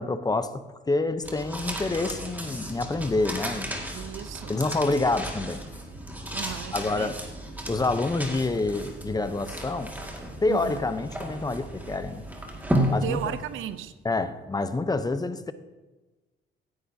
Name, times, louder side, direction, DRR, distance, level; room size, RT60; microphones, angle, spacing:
voice 1, 0.0-3.8 4.5-5.6 6.7-7.2 7.7-9.9 10.4-12.2 12.9-13.2 14.0-15.5, left 3 dB, 20° left, 0.7 m, -27 dB
sound 1, 1.2-13.8, right 1 dB, 10° right, 2.0 m, -34 dB
voice 2, 3.9-4.6 6.3-7.1 10.5-10.8 13.0-13.9, right 10 dB, 85° right, 0.6 m, -35 dB
16.5 x 9.8 x 2.8 m
cardioid pair, 90°, 20 cm